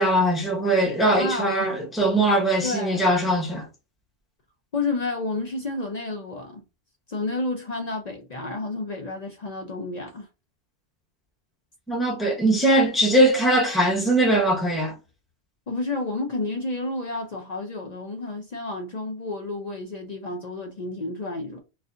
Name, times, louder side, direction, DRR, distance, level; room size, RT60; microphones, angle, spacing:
voice 1, 0.0-3.6 11.9-14.9, right 1 dB, ahead, 0.8 m, -21 dB
voice 2, 1.2-1.7 2.6-3.1 4.7-6.6 7.1-10.3 15.7-21.6, left 2 dB, 45° left, 0.6 m, -30 dB
4.2 x 2.6 x 2.6 m
omnidirectional pair, 1.2 m